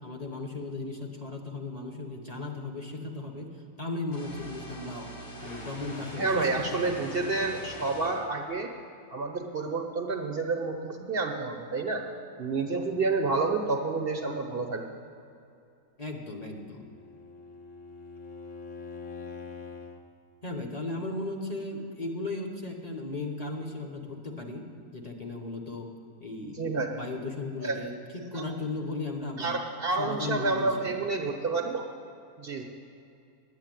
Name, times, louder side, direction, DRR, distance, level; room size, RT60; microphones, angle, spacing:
voice 1, 0.0-3.5 3.8-5.1 5.4-7.1 16.0-16.8 20.4-24.6 24.9-25.9 26.2-26.6 26.9-27.9 28.3-29.6 30.0-31.0, left 2 dB, 30° left, 1 dB, 1.1 m, -36 dB
sound 1, 4.1-8.3, equal, 80° left, 2.6 m, -43 dB
voice 2, 6.2-8.7 9.1-12.0 12.4-14.9 26.4-26.9 27.6-27.8 28.3-28.5 29.4-31.9 32.4-32.6, right 3 dB, 50° right, 3 dB, 1.0 m, -29 dB
Bowed string instrument, 16.4-20.0, left 4 dB, 60° left, 1.2 m, -44 dB
9.7 x 8.8 x 9.0 m, 2.6 s
omnidirectional pair, 1.5 m